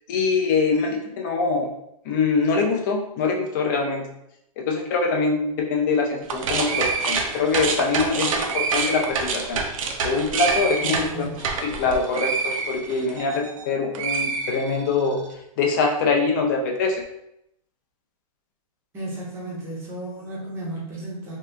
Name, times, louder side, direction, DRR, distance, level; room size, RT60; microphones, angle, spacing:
voice 1, 0.1-1.7 2.1-4.0 4.6-9.6 10.0-11.3 11.6-15.2 15.6-16.9, left 4 dB, 30° left, 1 dB, 0.4 m, -23 dB
sound 1, 6.2-13.6 13.9-15.1, right 5 dB, 60° right, 0.5 m, -26 dB
voice 2, 10.8-11.4 18.9-21.4, right 1 dB, 10° right, -4 dB, 0.6 m, -34 dB
2.7 x 2.3 x 3.2 m, 0.80 s
hypercardioid pair, 165°, 20 cm